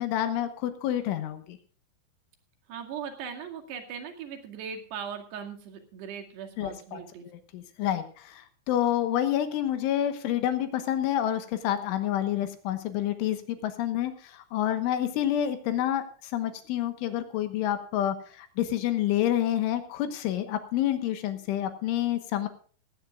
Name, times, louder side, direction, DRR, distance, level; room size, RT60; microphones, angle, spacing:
voice 1, 0.0-1.6 6.6-7.0 7.5-22.5, left 11 dB, 75° left, 10 dB, 3.5 m, -28 dB
voice 2, 2.7-7.3, right 7 dB, 60° right, 4 dB, 4.0 m, -39 dB
19.0 x 16.0 x 2.4 m, 0.42 s
omnidirectional pair, 5.9 m